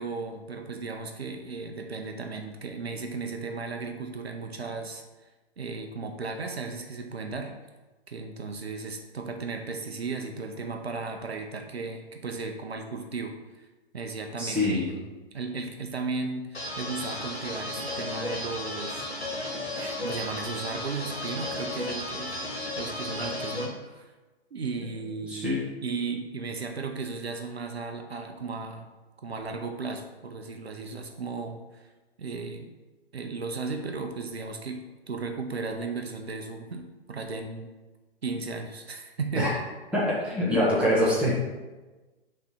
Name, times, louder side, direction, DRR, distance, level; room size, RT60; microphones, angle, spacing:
voice 1, 0.0-5.0 5.6-7.5 8.1-13.7 13.9-15.1 15.3-19.1 19.7-24.1 24.5-28.9 29.2-31.9 32.2-32.7 33.1-34.8 35.1-37.7 38.2-39.6 40.8-40.9, right 4 dB, 75° right, 5 dB, 0.7 m, -35 dB
voice 2, 14.4-14.9 25.3-25.6 39.3-39.5 39.9-41.5, left 1 dB, 5° right, -7 dB, 1.2 m, -25 dB
sound 1, 16.5-23.7, left 1 dB, 90° left, 1.8 m, -34 dB
6.8 x 3.3 x 5.6 m, 1.2 s
figure-of-eight pair, 125°, 31 cm